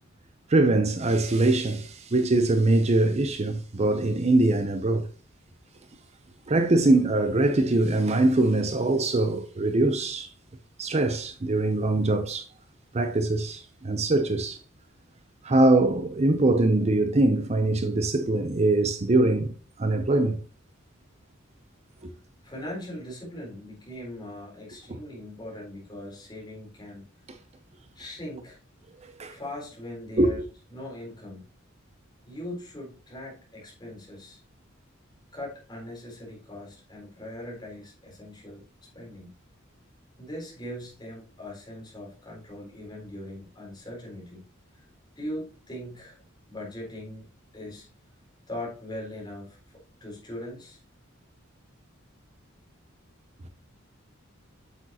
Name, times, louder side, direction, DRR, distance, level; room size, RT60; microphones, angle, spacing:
voice 1, 0.5-5.1 6.5-10.3 10.8-12.5 12.9-14.6 15.4-20.4 22.0-22.1 29.2-29.4 30.2-30.3, right 2 dB, 30° right, 0.6 m, -23 dB
voice 2, 22.4-27.0 28.0-28.6 29.3-30.4 30.7-31.4 32.3-34.4 35.3-39.3 40.2-44.4 44.7-44.9 45.2-47.3 47.5-47.9 48.5-50.8, left 1 dB, 20° left, 3.7 m, -40 dB
7.9 x 7.0 x 2.9 m
head